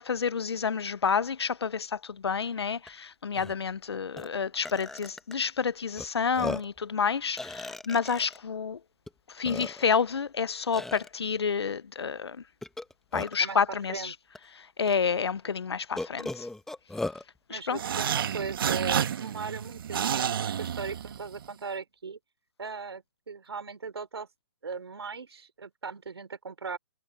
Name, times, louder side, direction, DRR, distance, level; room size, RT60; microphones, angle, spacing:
voice 1, 0.0-8.8 9.3-12.4 13.1-14.1 14.5-16.5 17.5-17.8, left 6 dB, 90° left, 0.8 m, -29 dB
Burping eructation, 2.9-3.0 3.3-3.5 4.2-4.3 4.6-5.3 6.0-6.1 6.3-6.8 7.4-8.4 9.1-9.2 9.4-10.0 10.7-11.1 12.6-13.5 14.3-14.4 14.9-15.0 16.0-17.2, left 2 dB, 5° left, 1.2 m, -37 dB
voice 2, 17.5-22.2 22.6-24.3 24.6-26.8, right 5 dB, 90° right, 5.3 m, -38 dB
sound 1, 17.7-21.5, right 9 dB, 60° right, 1.6 m, -30 dB
hypercardioid pair, 150°, 13 cm